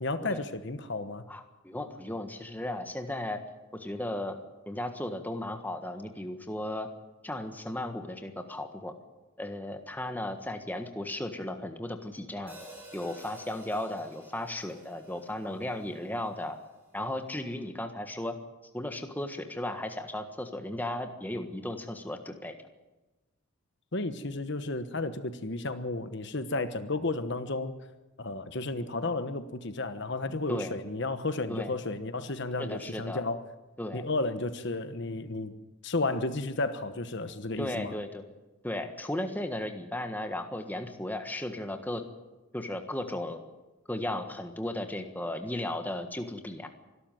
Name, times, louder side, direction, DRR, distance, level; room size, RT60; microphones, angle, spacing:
voice 1, 0.0-1.2 23.9-27.8 28.2-33.4 33.9-35.5 35.8-37.9, left 2 dB, 50° left, 10 dB, 1.2 m, -32 dB
voice 2, 1.3-3.4 3.7-4.4 4.7-6.9 7.2-8.9 9.4-12.5 12.9-16.6 16.9-18.4 18.7-22.5 30.5-30.7 31.5-31.7 32.6-33.2 33.8-34.0 37.6-38.2 38.6-42.0 42.5-43.4 43.9-46.7, left 1 dB, 10° left, 6 dB, 1.5 m, -35 dB
Hi-hat, 12.5-16.7, right 1 dB, 10° right, 5.2 m, -52 dB
25.0 x 12.5 x 9.2 m, 1.1 s
head